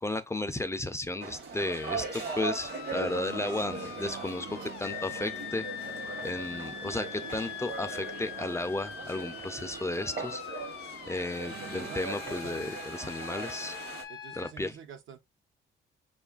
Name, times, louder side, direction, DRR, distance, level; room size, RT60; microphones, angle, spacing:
voice 1, 0.0-10.4 11.1-13.8 14.3-14.8, left 2 dB, 15° left, 0.4 m, -34 dB
sound 1, 1.2-14.0, right 4 dB, 55° right, 1.1 m, -40 dB
sound 2, 1.7-14.5, left 10 dB, 65° left, 0.6 m, -43 dB
sound 3, 2.9-8.8 9.1-10.3 11.5-12.0, right 10 dB, 40° right, 0.5 m, -49 dB
voice 2, 11.9-12.8 14.1-15.2, right 7 dB, 75° right, 0.8 m, -47 dB
5.1 x 2.4 x 2.3 m
cardioid pair, 90°, 20 cm